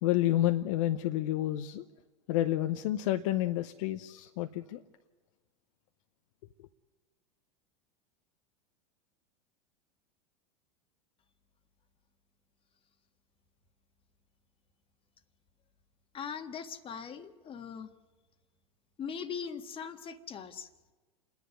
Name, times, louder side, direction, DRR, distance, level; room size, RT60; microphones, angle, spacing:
voice 1, 0.0-1.8 2.3-4.8, left 14 dB, 65° left, 0.9 m, -29 dB
voice 2, 16.1-17.9 19.0-20.9, left 7 dB, 30° left, 1.6 m, -40 dB
28.5 x 10.5 x 9.7 m
hypercardioid pair, 100°, 18 cm